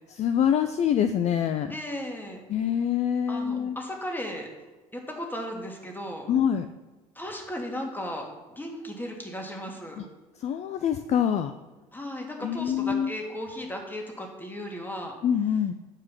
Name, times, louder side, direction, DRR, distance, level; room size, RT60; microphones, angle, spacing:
voice 1, 0.1-1.7 2.5-3.8 6.3-6.7 10.0-10.1 10.4-11.5 12.4-13.1 15.2-15.7, left 8 dB, 40° left, 9 dB, 0.4 m, -25 dB
voice 2, 1.7-2.4 3.3-4.5 4.9-6.3 7.2-10.0 11.9-15.1, equal, 10° left, 1 dB, 1.8 m, -36 dB
8.7 x 4.7 x 5.7 m, 1.2 s
figure-of-eight pair, 60°, 18 cm